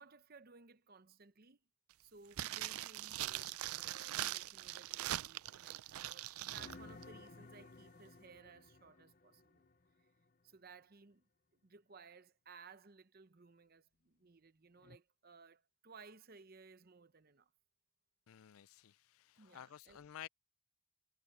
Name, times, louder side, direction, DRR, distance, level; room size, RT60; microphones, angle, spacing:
voice 1, 0.0-1.6 2.0-9.7 10.0-10.1 10.4-11.3 11.6-17.5 19.4-20.1, right 4 dB, 45° right, 0.8 m, -60 dB
sound 1, 2.3-6.8 7.0-7.1, right 14 dB, 90° right, 0.4 m, -42 dB
sound 2, 6.4-10.3 14.8-15.0, left 3 dB, 40° left, 0.6 m, -57 dB
voice 2, 18.3-18.9 19.4-20.3, left 10 dB, 80° left, 0.4 m, -52 dB
head